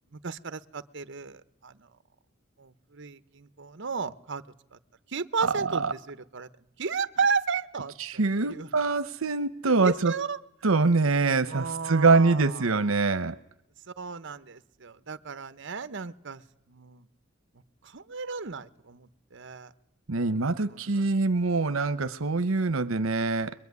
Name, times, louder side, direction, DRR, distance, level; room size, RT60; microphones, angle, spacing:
voice 1, 0.1-1.9 2.6-4.4 5.1-6.5 6.8-8.7 9.6-10.4 11.5-12.7 13.9-16.4 16.7-17.0 17.8-19.7 20.7-21.1, right 5 dB, 65° right, 1.1 m, -34 dB
voice 2, 5.4-5.9 8.0-10.1 10.6-13.4 20.1-23.5, right 3 dB, 90° right, 0.9 m, -24 dB
23.5 x 22.5 x 9.6 m
head